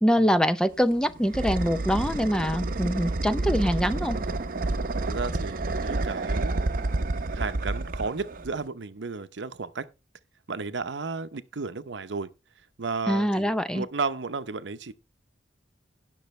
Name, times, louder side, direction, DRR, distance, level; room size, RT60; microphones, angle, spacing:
voice 1, 0.0-4.2 13.1-13.9, equal, 5° left, 0.5 m, -24 dB
sound 1, 0.7-8.7, right 2 dB, 50° right, 0.8 m, -29 dB
voice 2, 5.0-6.7 7.3-9.9 10.5-12.3 12.8-14.9, right 4 dB, 90° right, 0.8 m, -33 dB
17.5 x 6.2 x 3.2 m
head